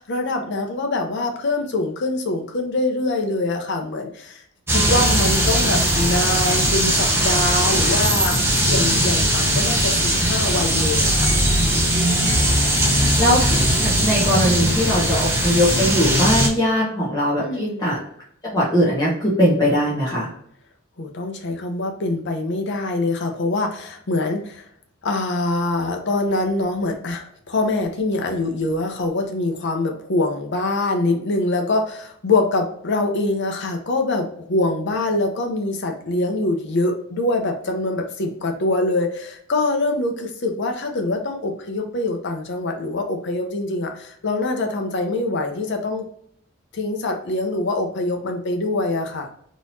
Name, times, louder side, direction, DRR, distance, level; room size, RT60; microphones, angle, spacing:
voice 1, 0.0-4.4 4.7-8.4 8.7-11.3 14.6-14.8 17.4-17.9 21.0-24.7 25.0-46.1 46.7-49.3, left 2 dB, 55° left, 3 dB, 0.7 m, -24 dB
sound 1, 4.7-16.5, right 1 dB, 10° right, 0.8 m, -19 dB
voice 2, 12.9-13.6 13.8-18.0 18.4-20.3, equal, 15° left, -7 dB, 1.1 m, -20 dB
3.7 x 3.0 x 2.7 m, 0.67 s
head